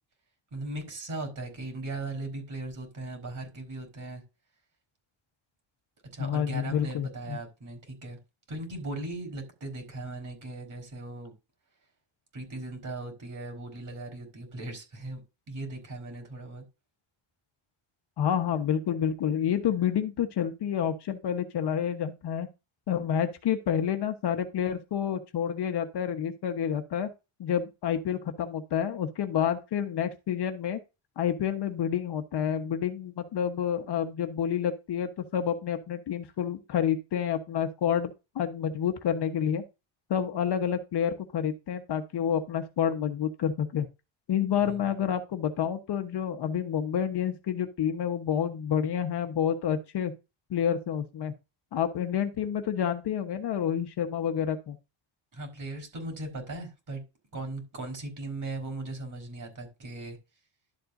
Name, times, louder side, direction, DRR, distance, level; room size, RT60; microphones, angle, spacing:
voice 1, 0.5-4.2 6.1-8.2 8.5-11.3 12.3-15.2 15.5-16.6 44.7-44.8 55.3-57.0 57.3-60.2, right 2 dB, 40° right, 4.4 m, -38 dB
voice 2, 6.2-7.4 18.2-22.5 22.9-27.1 27.4-30.8 31.2-38.1 38.3-39.6 40.1-43.9 44.3-50.1 50.5-51.3 51.7-54.8, left 8 dB, 55° left, 1.3 m, -29 dB
12.0 x 7.6 x 2.7 m
cardioid pair, 145°, 48 cm